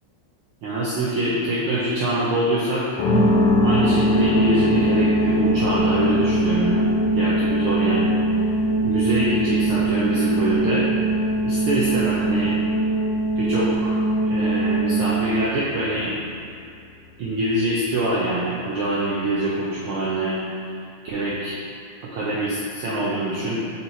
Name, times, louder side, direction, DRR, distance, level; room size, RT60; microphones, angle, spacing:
voice 1, 0.6-2.9 3.6-6.9 7.1-8.5 8.8-10.9 11.4-12.6 13.4-14.0 14.3-16.1 17.2-20.4 20.6-21.6 22.0-23.7, right 1 dB, 80° right, -8 dB, 1.2 m, -24 dB
sound 1, 3.0-18.8, left 4 dB, 90° left, 2.3 m, -29 dB
sound 2, 3.1-15.5, right 2 dB, 60° right, 1.7 m, -22 dB
6.1 x 4.0 x 3.9 m, 2.5 s
omnidirectional pair, 3.3 m